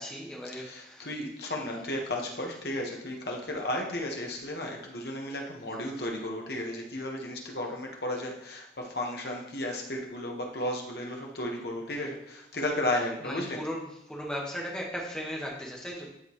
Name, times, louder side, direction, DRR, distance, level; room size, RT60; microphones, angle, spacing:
voice 1, 0.0-1.1 1.6-2.0 13.2-16.1, equal, 5° left, -3 dB, 1.5 m, -37 dB
voice 2, 0.6-13.6, left 1 dB, 60° left, 0 dB, 1.4 m, -34 dB
12.5 x 5.3 x 3.1 m, 0.80 s
head